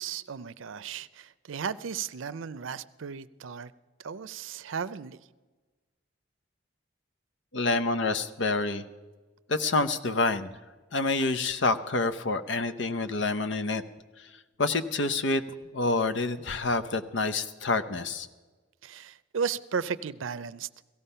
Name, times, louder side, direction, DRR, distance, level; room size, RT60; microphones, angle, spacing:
voice 1, 0.0-3.7 4.0-5.2 18.8-20.7, right 6 dB, 85° right, 0.5 m, -35 dB
voice 2, 7.5-8.8 9.5-10.5 10.9-13.8 14.6-15.4 15.7-18.3, left 3 dB, 65° left, 0.8 m, -27 dB
17.0 x 15.0 x 5.6 m
head